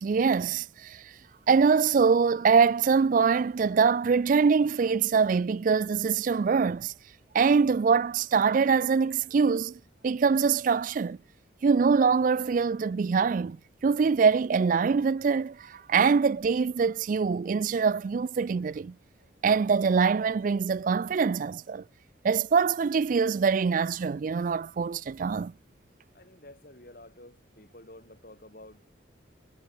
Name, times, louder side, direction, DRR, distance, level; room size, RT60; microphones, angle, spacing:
voice 1, 0.0-1.0 1.5-6.9 7.3-9.7 10.0-11.2 11.6-13.6 13.8-18.9 19.4-21.8 22.2-25.5, right 5 dB, 40° right, 0.3 m, -24 dB
voice 2, 26.1-28.9, left 1 dB, 45° left, 6.2 m, -50 dB
head